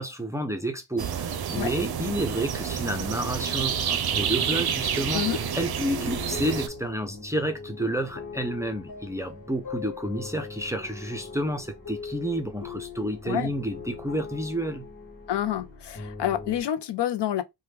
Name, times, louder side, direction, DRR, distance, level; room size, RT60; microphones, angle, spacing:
voice 1, 0.0-14.9, right 1 dB, 5° right, 0.5 m, -30 dB
sound 1, 1.0-6.7, right 8 dB, 60° right, 0.5 m, -29 dB
sound 2, 3.1-16.6, left 4 dB, 50° left, 1.3 m, -41 dB
voice 2, 15.3-17.4, left 11 dB, 75° left, 0.5 m, -28 dB
3.0 x 2.2 x 3.3 m
wide cardioid pair, 130°, 42 cm